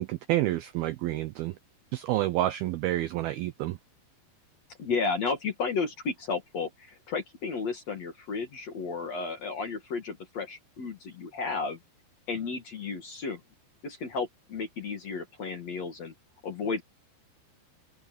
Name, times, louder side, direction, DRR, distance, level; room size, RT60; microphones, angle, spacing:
voice 1, 0.0-1.5 1.9-3.8, right 15 dB, 85° right, 2.2 m, -29 dB
voice 2, 4.8-11.8 12.3-13.4 13.8-16.1 16.4-16.8, left 4 dB, 45° left, 2.5 m, -33 dB
open air
omnidirectional pair, 5.3 m